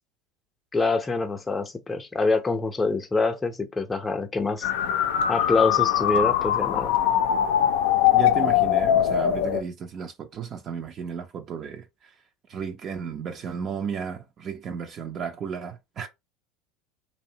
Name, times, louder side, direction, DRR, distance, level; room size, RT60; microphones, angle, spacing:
voice 1, 0.7-4.7 5.3-7.0, left 3 dB, 20° left, 0.5 m, -25 dB
sound 1, 4.6-9.6, left 10 dB, 75° left, 0.4 m, -22 dB
voice 2, 8.1-12.2 12.5-16.1, right 6 dB, 45° right, 0.4 m, -34 dB
2.6 x 2.1 x 2.7 m
hypercardioid pair, 90°, 0 cm